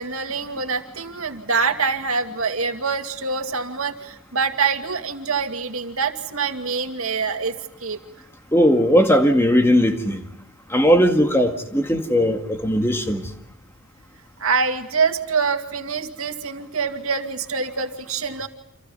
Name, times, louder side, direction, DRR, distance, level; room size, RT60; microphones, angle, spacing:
voice 1, 0.0-8.0 14.4-18.5, right 5 dB, 75° right, 6 dB, 2.3 m, -25 dB
voice 2, 8.5-10.2 10.7-13.3, equal, 10° left, 4 dB, 2.0 m, -18 dB
29.5 x 27.5 x 5.5 m, 0.76 s
head